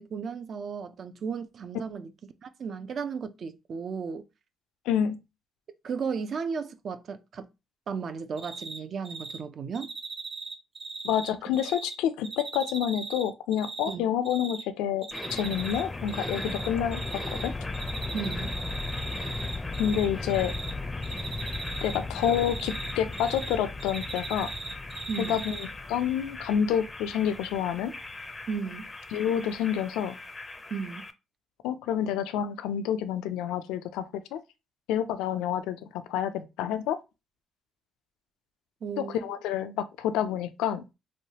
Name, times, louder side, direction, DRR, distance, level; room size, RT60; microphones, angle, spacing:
voice 1, 0.0-2.1 2.4-4.2 5.8-7.5 7.9-9.9 13.9-14.0 18.1-18.5 25.1-25.4 28.5-28.9 30.7-31.1 38.8-39.2, right 5 dB, 55° right, 0.4 m, -34 dB
voice 2, 4.9-5.2 11.0-17.5 19.8-20.5 21.8-24.5 25.2-25.6 25.9-27.9 29.1-30.2 31.6-34.4 34.9-37.0 39.0-40.8, left 9 dB, 85° left, 0.4 m, -28 dB
Cricket, 8.4-8.8 9.0-9.4 9.7-11.9 12.2-13.9 14.2-14.6 15.0-15.8 16.1-17.5 17.7-20.0 20.3-20.7 21.0-23.5 23.8-25.6, right 3 dB, 35° right, 1.0 m, -38 dB
sound 1, 15.1-31.1, left 3 dB, 25° left, 0.4 m, -37 dB
3.1 x 2.2 x 2.8 m
supercardioid pair, 70°, 0 cm